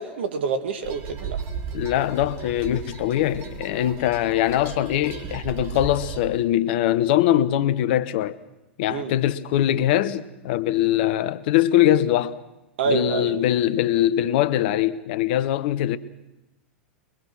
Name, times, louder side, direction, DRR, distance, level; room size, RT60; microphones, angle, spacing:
voice 1, 0.0-1.4 8.9-9.1 12.8-13.3, right 5 dB, 70° right, 2.4 m, -26 dB
sound 1, 0.8-6.2, right 7 dB, 45° right, 3.5 m, -35 dB
voice 2, 1.7-8.4 8.8-12.4 12.8-16.0, left 12 dB, 60° left, 1.2 m, -22 dB
23.0 x 23.0 x 6.3 m
hypercardioid pair, 90°, 6 cm